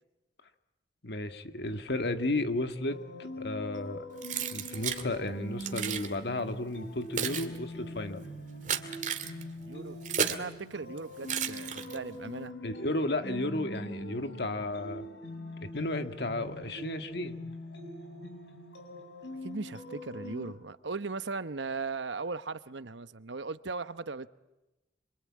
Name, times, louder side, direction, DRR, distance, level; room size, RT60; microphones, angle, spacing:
voice 1, 1.0-4.1 4.5-8.2 12.6-15.1 15.7-17.4, left 2 dB, 65° left, 8 dB, 1.7 m, -33 dB
sound 1, 2.9-20.5, left 1 dB, 80° left, 5.7 m, -43 dB
Keys jangling, 4.2-5.1 5.6-6.1 6.8-10.5 11.2-12.2, right 7 dB, 45° right, 2.1 m, -34 dB
voice 2, 9.6-12.5 19.4-24.3, right 4 dB, 80° right, 13 dB, 1.0 m, -38 dB
27.0 x 25.0 x 8.6 m, 0.98 s
head